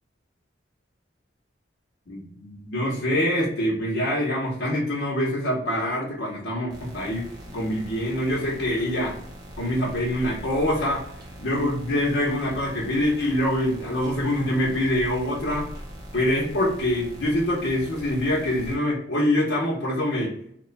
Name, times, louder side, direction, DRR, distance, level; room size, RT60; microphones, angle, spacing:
voice 1, 2.1-9.1 9.6-11.1 11.4-15.7 16.1-20.3, left 1 dB, 70° left, -5 dB, 0.8 m, -25 dB
sound 1, 6.7-18.8, equal, 20° right, 0.5 m, -41 dB
2.9 x 2.2 x 3.9 m, 0.68 s
head